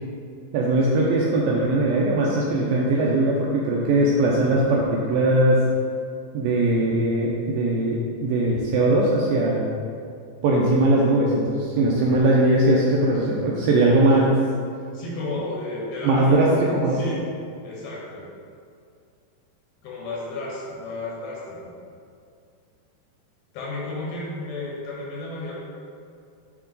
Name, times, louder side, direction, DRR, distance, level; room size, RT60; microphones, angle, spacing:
voice 1, 0.5-5.6 6.3-9.6 10.4-14.2 16.0-17.0, right 2 dB, 80° right, -3 dB, 2.1 m, -20 dB
voice 2, 13.8-14.3 14.9-16.6 16.9-17.2 17.6-18.3 19.8-21.7 23.5-25.5, left 2 dB, 75° left, -5 dB, 2.9 m, -32 dB
9.5 x 3.4 x 3.9 m, 2.4 s
omnidirectional pair, 4.6 m